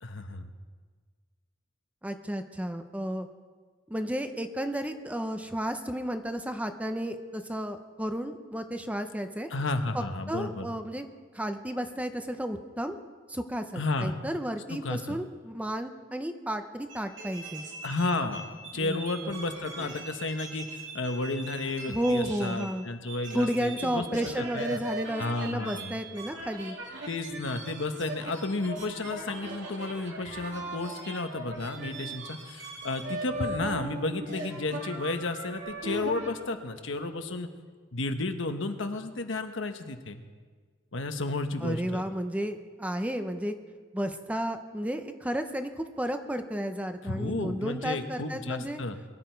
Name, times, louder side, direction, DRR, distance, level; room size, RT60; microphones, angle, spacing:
voice 1, 0.0-0.5 9.5-10.7 13.7-14.2 14.7-15.2 17.8-18.4 18.7-24.8 25.2-26.0 27.1-37.5 37.9-40.2 40.9-42.0 47.0-49.0, left 2 dB, 70° left, 7 dB, 1.1 m, -32 dB
voice 2, 2.0-3.3 3.9-9.5 9.9-11.1 11.3-13.0 13.3-17.6 18.7-19.3 21.9-22.9 23.3-26.8 41.6-43.5 43.9-48.8, equal, 5° right, 7 dB, 0.7 m, -32 dB
sound 1, 16.9-22.8 23.1-36.4, right 2 dB, 65° right, 3.1 m, -40 dB
22.5 x 11.5 x 4.6 m, 1.5 s
head